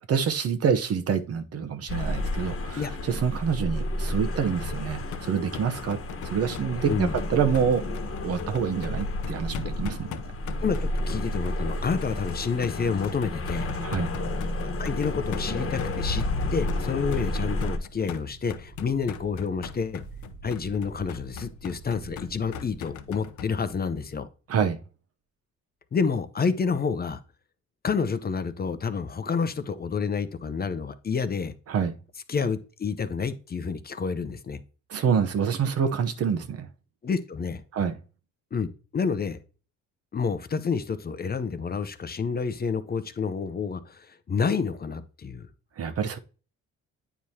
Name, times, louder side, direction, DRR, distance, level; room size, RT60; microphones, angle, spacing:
voice 1, 0.1-7.8 8.2-10.3 13.8-14.1 24.5-24.8 31.7-32.0 34.9-36.7 37.7-37.9 45.8-46.2, right 7 dB, 55° right, 0.8 m, -27 dB
sound 1, 1.9-17.8, left 1 dB, 45° left, 1.2 m, -31 dB
sound 2, 4.1-23.5, left 8 dB, 75° left, 0.8 m, -41 dB
voice 2, 6.8-7.2 10.6-13.7 14.8-16.2 16.5-20.0 20.4-24.3 25.9-27.2 27.8-31.5 32.3-34.6 37.0-37.6 38.5-39.4 40.1-45.5, left 5 dB, 30° left, 0.6 m, -29 dB
sound 3, 16.9-24.0, right 3 dB, 70° right, 1.5 m, -47 dB
9.0 x 4.7 x 2.8 m
cardioid pair, 90°, 30 cm